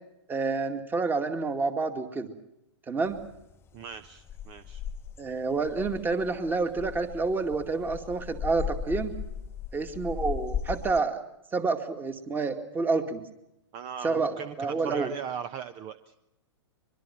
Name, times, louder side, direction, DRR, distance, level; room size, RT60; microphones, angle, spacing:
voice 1, 0.3-2.3 2.9-3.2 5.2-9.1 9.7-11.2 11.5-13.2 14.0-15.1, right 4 dB, 15° right, 8 dB, 2.2 m, -28 dB
sound 1, 3.0-11.0, left 8 dB, 15° left, 1.1 m, -38 dB
voice 2, 3.7-4.8 13.7-16.1, right 8 dB, 35° right, 12 dB, 1.1 m, -38 dB
24.0 x 23.0 x 6.0 m, 0.86 s
hypercardioid pair, 120°, 15 cm